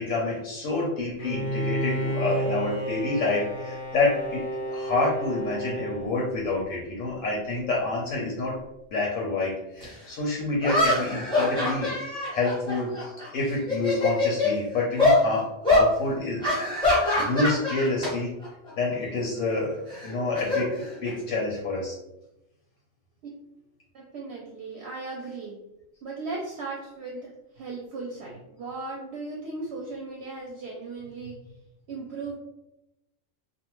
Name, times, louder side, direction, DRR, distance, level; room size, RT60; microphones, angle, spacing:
voice 1, 0.0-8.6 8.9-11.9 12.3-16.4 16.8-16.9 17.2-18.3 18.8-22.0, left 2 dB, 85° left, -3 dB, 1.0 m, -28 dB
Bowed string instrument, 1.2-6.8, right 1 dB, 50° left, 0.7 m, -31 dB
sound 1, 9.8-9.9 10.6-13.3 13.6-14.5 15.0-15.2 15.6-15.9 16.4-18.1 18.4-18.7 19.9-21.3, left 2 dB, 5° left, 0.6 m, -24 dB
voice 2, 23.9-25.6 26.0-31.4 31.9-32.4, right 3 dB, 65° right, -2 dB, 0.7 m, -37 dB
2.5 x 2.1 x 2.9 m, 0.92 s
omnidirectional pair, 1.3 m